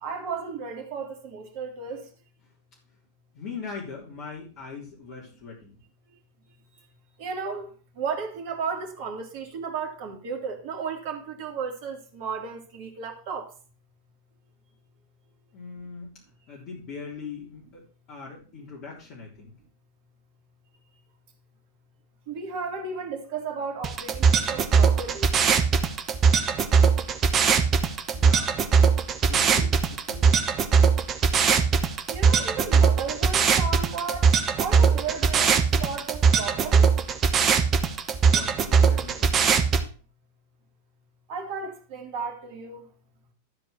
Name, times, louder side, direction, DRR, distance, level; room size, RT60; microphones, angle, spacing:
voice 1, 0.0-2.0 7.2-7.7 8.0-13.5 22.3-25.3 32.1-36.9 41.3-42.8, right 5 dB, 45° right, 2.6 m, -34 dB
voice 2, 3.3-5.7 15.5-16.1 16.5-17.8 18.1-19.5 28.1-28.6 29.2-30.4 38.2-39.5, left 5 dB, 40° left, 3.5 m, -40 dB
sound 1, 23.8-39.8, right 6 dB, 30° right, 1.2 m, -21 dB
13.0 x 4.6 x 5.9 m
figure-of-eight pair, 90°, 0 cm